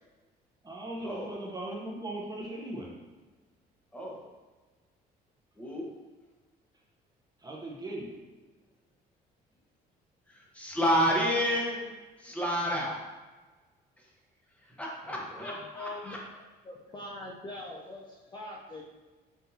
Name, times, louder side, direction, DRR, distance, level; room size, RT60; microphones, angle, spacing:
voice 1, 0.6-2.9 7.4-8.1 15.3-15.5, right 1 dB, 20° right, -2 dB, 0.8 m, -38 dB
voice 2, 5.6-5.9 10.3-11.8 12.2-13.0 14.8-16.2, equal, 10° left, -3 dB, 1.0 m, -30 dB
voice 3, 15.0-16.1 16.6-18.8, left 2 dB, 25° left, -3 dB, 0.6 m, -42 dB
5.8 x 2.6 x 2.7 m, 1.3 s
cardioid pair, 110°, 17 cm